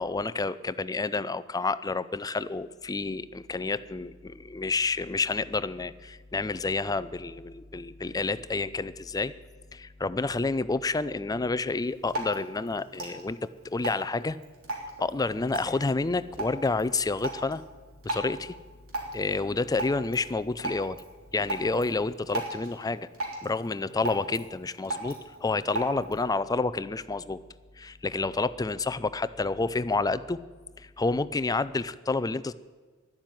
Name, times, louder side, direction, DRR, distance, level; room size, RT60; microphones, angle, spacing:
voice 1, 0.0-9.3 9.7-14.4 15.0-17.6 18.0-18.6 19.1-21.0 21.3-23.1 23.4-27.4 27.8-30.4 30.8-32.5, left 3 dB, 15° left, 16 dB, 0.4 m, -29 dB
Drip, 11.8-26.3, right 2 dB, 75° right, 3.3 m, -38 dB
12.0 x 11.0 x 9.1 m, 1.4 s
head